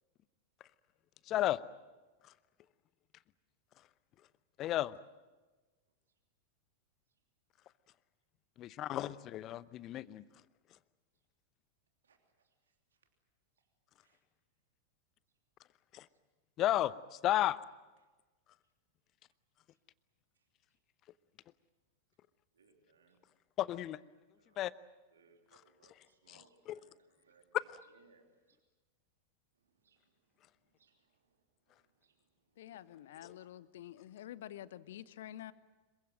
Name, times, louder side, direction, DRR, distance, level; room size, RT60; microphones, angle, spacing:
voice 1, 1.3-1.6 4.6-4.9 8.6-10.2 15.9-16.1 16.6-17.6 23.6-24.0 24.6-24.7 26.3-26.4 26.7-26.8, left 14 dB, 35° left, 19 dB, 0.8 m, -33 dB
voice 2, 12.0-13.1 13.6-13.7 14.0-14.2 16.1-16.2 18.0-18.1 18.6-18.7 19.7-19.8 20.3-20.8 22.5-23.2 24.3-24.6 25.1-28.6 29.5-32.7 35.4-35.5, right 4 dB, 70° right, 3 dB, 3.1 m, -71 dB
voice 3, 32.6-35.5, left 12 dB, 55° left, 17 dB, 1.0 m, -48 dB
27.0 x 23.0 x 7.7 m, 1.2 s
figure-of-eight pair, 90°, 0 cm